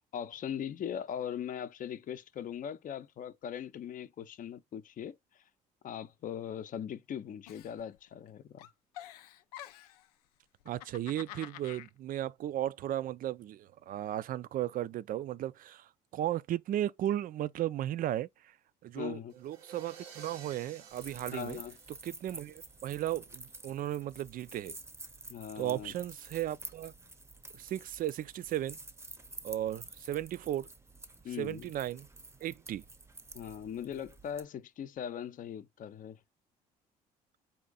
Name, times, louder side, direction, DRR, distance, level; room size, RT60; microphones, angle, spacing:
voice 1, 0.1-5.1 5.8-8.7 19.0-19.3 21.3-21.8 25.3-25.9 31.2-31.7 33.3-36.2, left 9 dB, 45° left, 0.6 m, -40 dB
Giggle, 7.5-8.3 8.6-10.1 10.6-11.9, left 13 dB, 85° left, 0.4 m, -48 dB
voice 2, 10.7-18.3 18.8-21.6 21.9-24.8 25.6-26.9 27.6-28.8 29.4-30.7 31.4-32.1 32.4-32.8, right 12 dB, 45° right, 0.4 m, -35 dB
sound 1, 19.3-22.6, right 6 dB, 80° right, 1.1 m, -52 dB
sound 2, 20.9-34.5, right 2 dB, 15° right, 0.7 m, -50 dB
4.2 x 2.5 x 3.8 m
hypercardioid pair, 55°, 20 cm